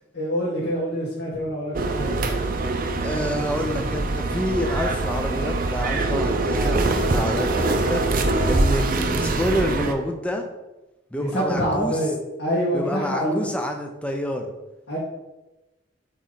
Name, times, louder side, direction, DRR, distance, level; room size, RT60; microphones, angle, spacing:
voice 1, 0.1-2.3 11.1-12.1 12.4-13.5 14.9-15.0, equal, 80° left, -8 dB, 1.7 m, -25 dB
sound 1, 1.7-9.9, right 2 dB, 50° right, 0.6 m, -23 dB
voice 2, 3.0-10.5 11.1-12.0 12.7-14.5, equal, 5° left, 4 dB, 0.6 m, -28 dB
8.2 x 3.2 x 4.0 m, 1.0 s
head